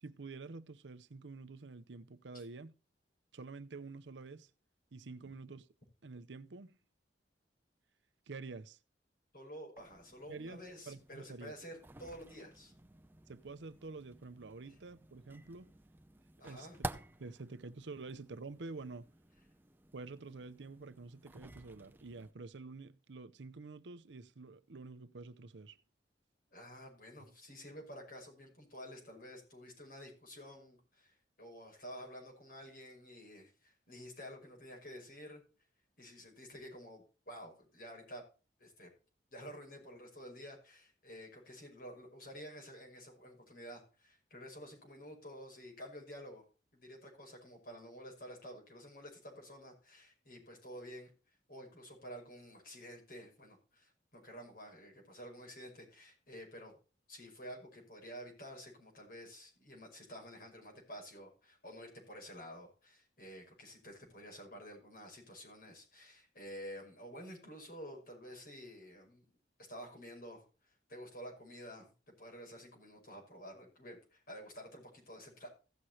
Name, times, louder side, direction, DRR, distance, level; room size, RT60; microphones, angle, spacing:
voice 1, 0.0-2.7 3.3-4.5 4.9-5.7 6.0-6.8 8.3-8.8 10.3-11.5 13.3-15.7 16.4-16.9 17.2-19.1 19.9-25.8, right 3 dB, 85° right, 0.7 m, -48 dB
voice 2, 9.3-12.7 14.7-14.8 16.4-16.8 26.5-35.4 36.0-38.2 38.6-38.9 39.3-46.5 46.7-51.1 51.5-56.7 57.1-69.3 69.7-75.5, equal, 55° left, 5.5 m, -51 dB
sound 1, 9.8-22.3, right 2 dB, 10° right, 0.7 m, -52 dB
16.0 x 6.4 x 4.3 m
head